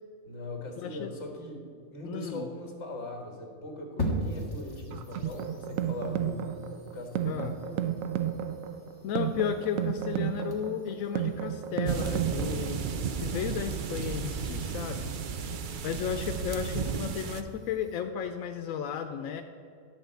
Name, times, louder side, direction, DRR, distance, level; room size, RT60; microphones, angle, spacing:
voice 1, 0.2-6.6 6.8-8.1 15.2-15.7, left 1 dB, 60° left, 2 dB, 1.9 m, -41 dB
voice 2, 0.8-1.1 2.0-2.5 7.3-7.5 9.0-15.1 15.8-19.4, left 8 dB, 90° left, 6 dB, 1.0 m, -34 dB
sound 1, 4.0-18.0, equal, 15° left, 1.6 m, -42 dB
sound 2, 4.9-12.9, right 10 dB, 90° right, 1.0 m, -32 dB
sound 3, 11.8-17.4, right 6 dB, 55° right, 0.6 m, -33 dB
12.5 x 4.3 x 8.0 m, 2.5 s
omnidirectional pair, 1.4 m